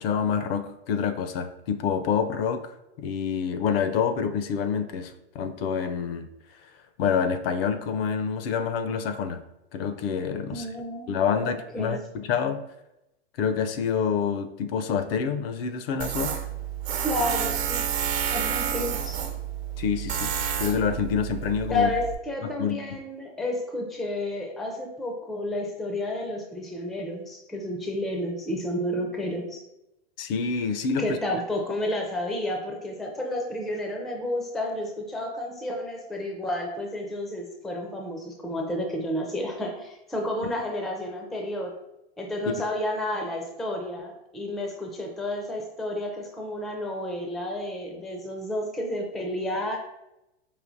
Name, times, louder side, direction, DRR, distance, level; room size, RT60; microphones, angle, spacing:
voice 1, 0.0-2.6 3.0-6.3 7.0-9.4 9.7-10.7 11.1-12.6 13.4-16.4 19.8-20.3 20.6-21.9 22.6-22.8 30.2-31.2 42.5-42.6, left 6 dB, 65° left, 9 dB, 0.5 m, -27 dB
voice 2, 10.5-12.0 17.0-17.9 18.3-19.2 21.7-29.6 31.0-41.8 42.2-49.8, left 1 dB, ahead, 1 dB, 0.4 m, -31 dB
Tools, 16.0-22.1, right 9 dB, 70° right, 0.9 m, -30 dB
4.9 x 2.6 x 2.6 m, 0.88 s
hypercardioid pair, 125°, 32 cm